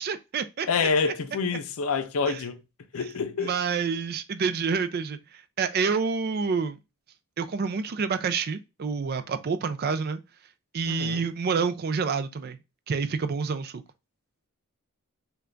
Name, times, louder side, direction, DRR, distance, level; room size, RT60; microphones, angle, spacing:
voice 1, 0.0-1.1 2.3-2.4 3.4-6.8 7.4-10.2 10.7-12.6 12.9-13.8, right 5 dB, 45° right, 0.4 m, -28 dB
voice 2, 0.7-2.6 2.9-3.5 10.9-11.2, left 5 dB, 75° left, 0.5 m, -27 dB
3.3 x 2.3 x 3.7 m
head